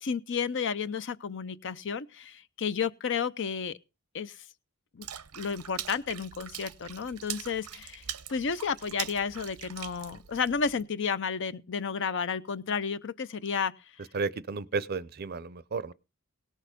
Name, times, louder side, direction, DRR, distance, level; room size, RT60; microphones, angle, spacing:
voice 1, 0.0-3.8 4.1-4.4 4.9-5.1 5.4-8.0 8.3-13.7, left 6 dB, 55° left, 0.6 m, -32 dB
Water / Splash splatter, 5.0-10.8, right 11 dB, 90° right, 0.8 m, -42 dB
voice 2, 14.1-15.9, right 4 dB, 45° right, 0.6 m, -33 dB
17.5 x 6.4 x 5.1 m
head